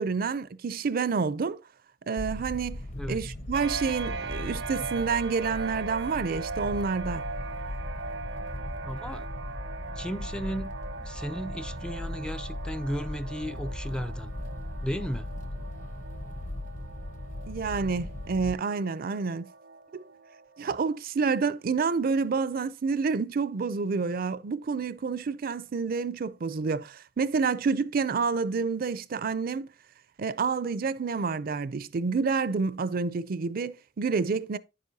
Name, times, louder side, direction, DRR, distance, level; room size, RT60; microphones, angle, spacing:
voice 1, 0.0-1.6 2.1-2.8 3.1-7.2 17.5-19.5 19.9-20.0 20.6-29.7 30.2-34.6, right 5 dB, 50° right, 0.5 m, -28 dB
sound 1, 2.2-18.6, left 1 dB, 45° left, 0.9 m, -38 dB
sound 2, 3.5-20.8, right 4 dB, 90° right, 1.0 m, -40 dB
voice 2, 8.8-9.3 10.0-10.7 11.0-14.3 14.8-15.3, equal, 5° left, 0.4 m, -34 dB
9.8 x 7.5 x 2.7 m
head